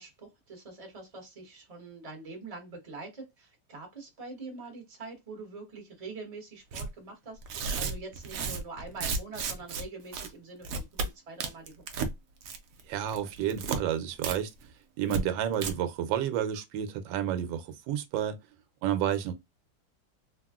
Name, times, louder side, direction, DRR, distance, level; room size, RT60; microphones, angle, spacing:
voice 1, 0.0-11.8, right 3 dB, 25° right, 0.9 m, -44 dB
Tearing, 6.7-6.9 7.4-9.8 10.1-10.3 10.6-11.1 11.4-12.1 12.4-12.8 13.1-13.8 14.2-14.4 14.6-14.7 15.1-15.2 15.5-15.7, right 4 dB, 70° right, 0.8 m, -33 dB
voice 2, 12.9-14.5 15.0-18.4 18.8-19.3, right 10 dB, 85° right, 1.3 m, -30 dB
3.4 x 2.3 x 2.3 m
omnidirectional pair, 2.0 m